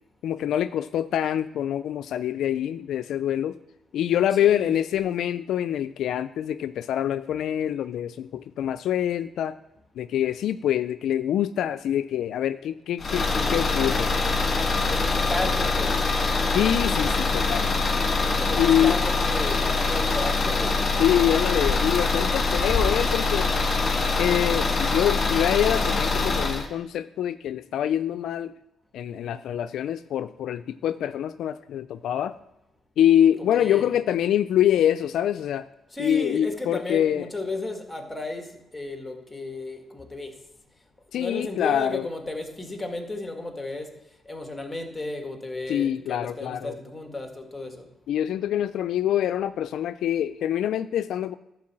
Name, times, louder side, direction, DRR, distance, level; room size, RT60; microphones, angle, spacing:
voice 1, 0.2-3.5 3.9-9.6 10.0-13.2 13.5-14.1 16.5-17.8 18.6-19.0 21.0-23.5 24.2-28.5 28.9-32.4 33.0-35.7 36.0-37.3 41.1-42.1 45.7-46.8 48.1-51.3, left 10 dB, 75° left, 12 dB, 0.3 m, -25 dB
voice 2, 4.4-4.8 13.1-13.7 14.9-16.0 18.2-20.9 33.5-34.0 35.9-40.4 41.1-43.9 44.3-47.9, left 2 dB, 10° left, 4 dB, 1.9 m, -34 dB
sound 1, 13.0-26.7, left 3 dB, 40° left, 1.7 m, -24 dB
11.5 x 4.5 x 7.5 m, 0.92 s
cardioid pair, 90°, 0 cm